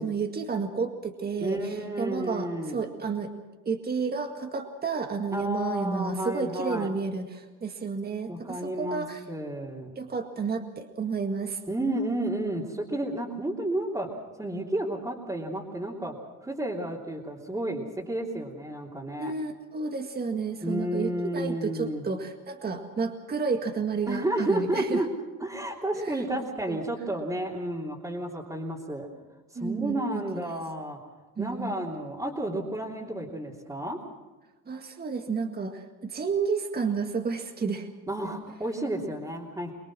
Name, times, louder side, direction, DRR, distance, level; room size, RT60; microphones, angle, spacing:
voice 1, 0.0-3.3 3.7-9.2 10.0-11.6 19.2-25.0 25.9-26.2 26.7-26.8 29.6-30.6 31.4-31.7 34.7-37.9, right 5 dB, 30° right, 4 dB, 2.0 m, -31 dB
voice 2, 1.4-2.8 5.3-6.9 8.3-10.0 11.7-14.1 14.4-16.1 16.4-19.3 20.6-22.0 24.1-25.1 25.4-29.1 29.5-31.0 31.4-34.0 38.1-39.7, right 1 dB, 10° right, -6 dB, 3.2 m, -31 dB
24.0 x 21.0 x 6.3 m, 1.2 s
cardioid pair, 105°, 32 cm